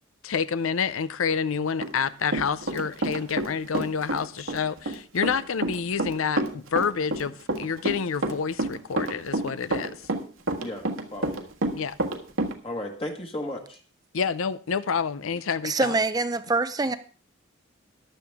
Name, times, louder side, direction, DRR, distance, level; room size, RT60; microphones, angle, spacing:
voice 1, 0.2-9.9 11.7-12.0 14.1-15.9, left 6 dB, 80° left, 0.6 m, -28 dB
Run, 1.8-3.5 3.7-12.5, right 2 dB, 75° right, 1.6 m, -28 dB
voice 2, 10.6-11.5 12.6-13.8, left 1 dB, 25° left, 1.5 m, -35 dB
voice 3, 15.6-17.0, right 3 dB, 20° right, 0.5 m, -24 dB
14.5 x 11.0 x 3.6 m
head